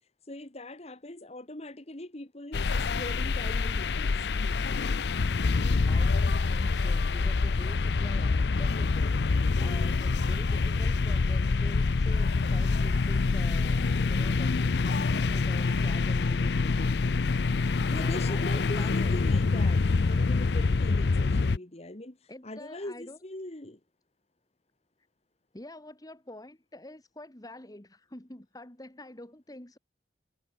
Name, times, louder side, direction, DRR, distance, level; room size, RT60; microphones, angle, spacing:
voice 1, 0.3-4.2 10.2-10.5 17.9-22.2 22.4-23.8, left 1 dB, 35° left, 1.8 m, -41 dB
sound 1, 2.5-21.6, left 4 dB, 70° left, 0.5 m, -26 dB
voice 2, 5.8-9.3 9.6-16.9 17.4-19.2 22.3-23.2 25.5-29.8, left 1 dB, 20° left, 1.8 m, -46 dB
head